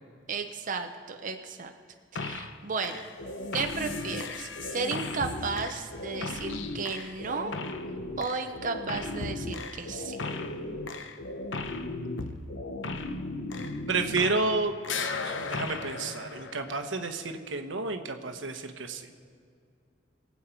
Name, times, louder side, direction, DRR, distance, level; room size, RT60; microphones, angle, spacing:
voice 1, 0.3-1.7 2.1-3.0 3.5-7.5 8.2-10.2, right 4 dB, 45° right, 5 dB, 0.7 m, -34 dB
sound 1, 2.2-2.6 2.8-14.6 14.8-17.0, left 3 dB, 80° left, 0.8 m, -36 dB
voice 2, 13.9-14.7 15.2-19.1, right 3 dB, 85° right, 7 dB, 1.1 m, -30 dB
23.0 x 8.4 x 4.5 m, 2.3 s
head